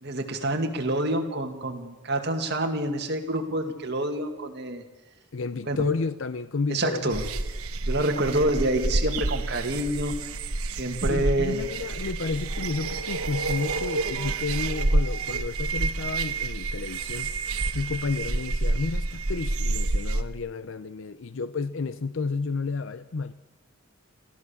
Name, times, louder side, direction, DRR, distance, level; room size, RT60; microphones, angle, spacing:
voice 1, 0.0-4.8 5.7-5.8 6.7-7.2 7.8-10.2 10.7-11.6, right 1 dB, 50° right, 4 dB, 2.2 m, -27 dB
voice 2, 5.3-7.2 11.1-17.3 17.7-23.3, left 4 dB, 60° left, 13 dB, 0.6 m, -31 dB
sound 1, 7.1-20.2, right 2 dB, 90° right, 1.2 m, -28 dB
23.0 x 16.0 x 7.1 m, 1.1 s
head